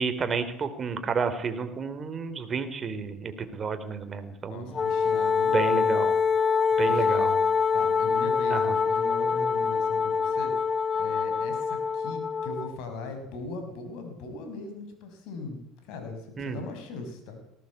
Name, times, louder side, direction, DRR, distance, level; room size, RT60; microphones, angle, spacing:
voice 1, 0.0-4.8 5.5-6.2 6.8-7.3 8.5-8.8 16.4-16.6, right 5 dB, 35° right, 9 dB, 3.6 m, -30 dB
voice 2, 4.5-5.5 6.8-7.4 7.7-10.5 11.0-17.4, left 3 dB, 65° left, 7 dB, 6.1 m, -39 dB
Wind instrument woodwind instrument, 4.7-12.7, left 5 dB, 35° left, 1.0 m, -25 dB
18.5 x 17.0 x 8.5 m, 0.80 s
hypercardioid pair, 75°, 0 cm